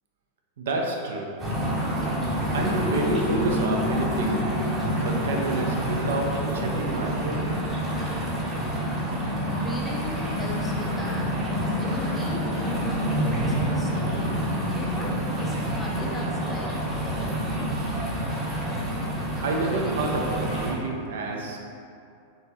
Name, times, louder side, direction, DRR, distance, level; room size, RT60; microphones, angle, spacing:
voice 1, 0.6-1.3 2.5-4.4 4.9-7.5 19.4-21.6, right 2 dB, 60° right, 0 dB, 0.4 m, -29 dB
sound 1, 1.4-20.7, equal, 20° right, 0.8 m, -28 dB
sound 2, 2.6-7.4, equal, 35° left, 1.1 m, -32 dB
voice 2, 9.3-11.3 11.8-17.5, left 2 dB, 15° left, -3 dB, 0.6 m, -38 dB
3.5 x 2.9 x 2.9 m, 2.4 s
figure-of-eight pair, 90°, 0 cm